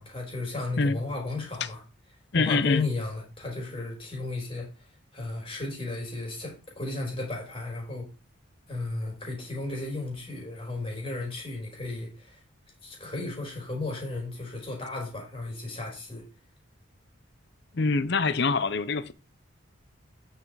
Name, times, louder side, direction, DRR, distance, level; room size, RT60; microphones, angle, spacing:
voice 1, 0.0-1.8 2.3-4.7 5.1-8.1 8.7-12.4 12.8-16.2, left 2 dB, 25° left, 4.0 m, -34 dB
voice 2, 2.3-2.8 17.7-19.1, left 4 dB, 55° left, 0.7 m, -25 dB
9.1 x 5.8 x 4.8 m
head